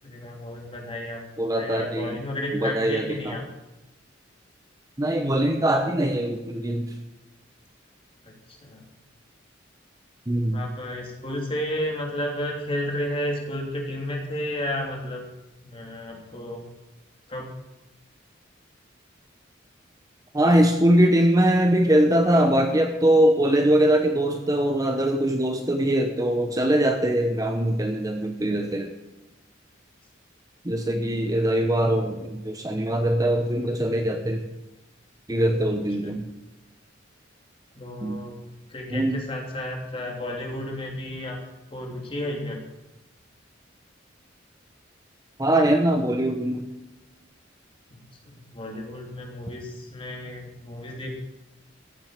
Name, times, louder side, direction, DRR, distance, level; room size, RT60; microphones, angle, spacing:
voice 1, 0.0-3.4 8.2-8.9 10.5-15.2 15.6-16.6 17.3-17.5 36.0-36.1 37.7-38.3 38.7-41.4 41.7-42.6 47.9-51.1, left 1 dB, 30° left, 0 dB, 3.1 m, -32 dB
voice 2, 1.4-2.2 2.5-3.3 5.0-6.9 10.3-10.6 20.3-28.9 30.6-34.4 35.3-36.3 38.0-38.2 38.9-39.2 45.4-46.7, right 1 dB, 20° right, 5 dB, 0.9 m, -22 dB
15.0 x 7.6 x 7.6 m, 0.99 s
head